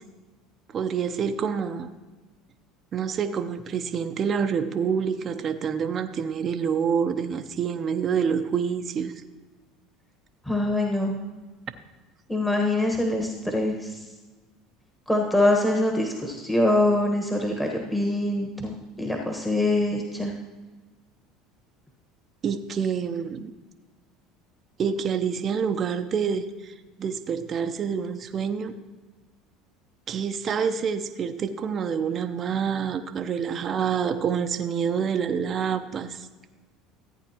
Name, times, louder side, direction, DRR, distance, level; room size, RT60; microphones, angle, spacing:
voice 1, 0.7-1.9 2.9-9.1 22.4-23.5 24.8-28.7 30.1-36.3, right 7 dB, 40° right, 8 dB, 0.7 m, -27 dB
voice 2, 10.4-11.2 12.3-14.0 15.1-20.3, left 1 dB, 5° left, 1 dB, 1.3 m, -24 dB
14.5 x 8.7 x 3.0 m, 1.3 s
supercardioid pair, 90°, 0 cm